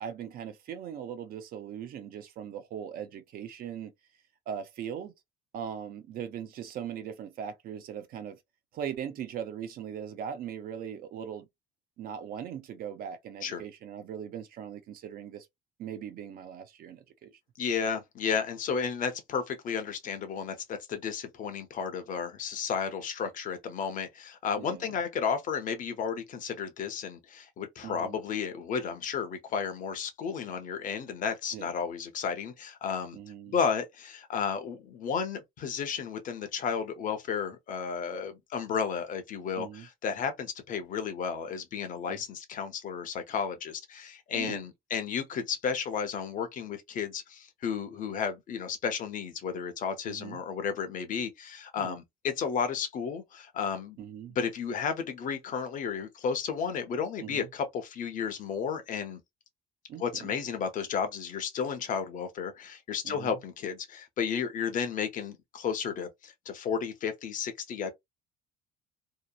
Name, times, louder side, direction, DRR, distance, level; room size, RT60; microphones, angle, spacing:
voice 1, 0.0-3.9 4.5-5.1 5.5-8.4 8.7-11.5 12.0-15.5 15.8-17.3 24.6-24.9 27.8-28.2 31.5-31.7 33.1-33.5 39.6-39.9 42.1-42.2 44.3-44.6 50.1-50.4 51.8-52.0 54.0-54.4 57.2-57.5 59.9-60.4 63.0-63.4, right 8 dB, 45° right, 0.5 m, -40 dB
voice 2, 17.6-33.2 33.5-54.0 54.3-59.2 60.0-67.9, left 6 dB, 40° left, 0.6 m, -33 dB
2.8 x 2.0 x 2.3 m
cardioid pair, 170°, 21 cm